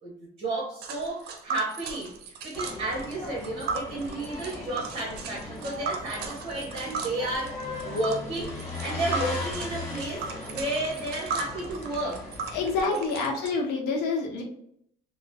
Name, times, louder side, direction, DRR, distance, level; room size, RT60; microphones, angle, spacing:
voice 1, 0.0-2.1 2.4-12.2 12.9-13.0, right 1 dB, 35° right, -4 dB, 1.0 m, -32 dB
Tick, 0.8-13.5, right 5 dB, 75° right, 0.6 m, -37 dB
sound 1, 2.5-12.9, left 2 dB, 20° left, 1.3 m, -38 dB
voice 2, 12.5-14.4, left 4 dB, 90° left, 1 dB, 0.8 m, -27 dB
3.1 x 2.1 x 2.6 m, 0.70 s
cardioid pair, 110°, 17 cm